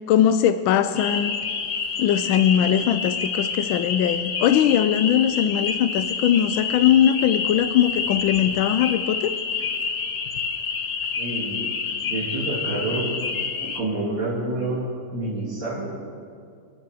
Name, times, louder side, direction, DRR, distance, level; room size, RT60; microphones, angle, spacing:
voice 1, 0.1-1.4 2.0-9.3, left 10 dB, 80° left, 10 dB, 1.4 m, -20 dB
sound 1, 0.9-13.8, left 5 dB, 55° left, 1.4 m, -28 dB
voice 2, 11.2-11.6 12.1-13.1 13.6-16.0, right 2 dB, 65° right, -8 dB, 3.7 m, -28 dB
27.5 x 9.3 x 4.9 m, 2.2 s
omnidirectional pair, 2.2 m